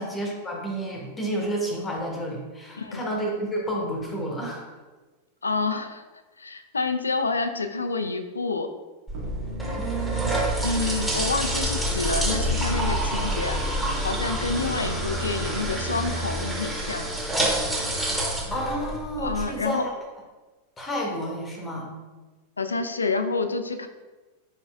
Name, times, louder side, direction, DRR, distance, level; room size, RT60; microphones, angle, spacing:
voice 1, 0.0-4.7 9.8-10.3 18.5-19.9 20.8-21.9, right 1 dB, 15° left, 0 dB, 1.0 m, -30 dB
voice 2, 5.4-6.0 6.4-8.7 10.6-13.6 14.0-17.1 19.2-19.9 22.6-23.9, left 3 dB, 75° left, 8 dB, 0.4 m, -28 dB
sound 1, 9.1-19.5, right 1 dB, 5° right, 1.2 m, -28 dB
sound 2, 9.1-16.5, equal, 65° right, 0.9 m, -32 dB
4.9 x 4.3 x 2.4 m, 1.2 s
figure-of-eight pair, 90°, 0 cm